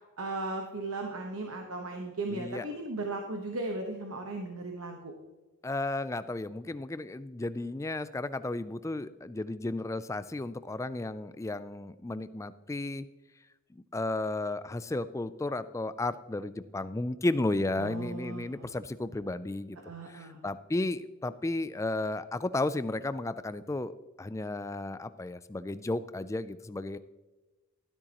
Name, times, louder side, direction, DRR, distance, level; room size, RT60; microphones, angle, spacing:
voice 1, 0.2-5.1 17.8-18.7 19.8-20.4, right 2 dB, 75° right, 2 dB, 1.2 m, -37 dB
voice 2, 2.3-2.6 5.6-13.1 13.7-19.8 20.1-27.0, left 2 dB, 15° left, 14 dB, 0.3 m, -33 dB
12.5 x 12.5 x 3.0 m, 1.2 s
head